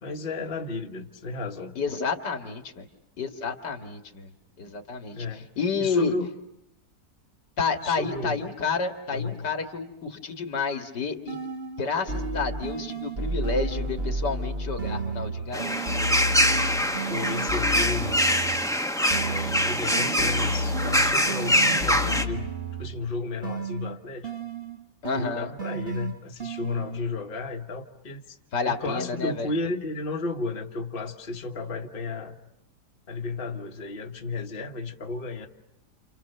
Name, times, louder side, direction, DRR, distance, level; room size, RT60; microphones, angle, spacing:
voice 1, 0.0-1.8 5.1-5.5 5.8-6.3 7.8-8.5 9.1-9.5 17.1-18.2 19.1-22.5 22.8-24.3 25.1-28.4 28.7-32.4 33.1-35.5, left 3 dB, 35° left, 3 dB, 1.6 m, -33 dB
voice 2, 1.8-2.9 3.2-4.3 4.6-5.3 5.6-6.1 7.6-11.4 11.8-16.0 25.0-25.5 28.5-29.5, left 5 dB, 80° left, 6 dB, 2.6 m, -30 dB
sound 1, 11.3-11.8 12.1-18.7 19.1-23.1 23.4-27.1, right 1 dB, 35° right, 1.5 m, -32 dB
sound 2, 15.5-22.2, equal, ahead, 1.1 m, -24 dB
29.5 x 29.0 x 6.7 m, 0.84 s
omnidirectional pair, 1.8 m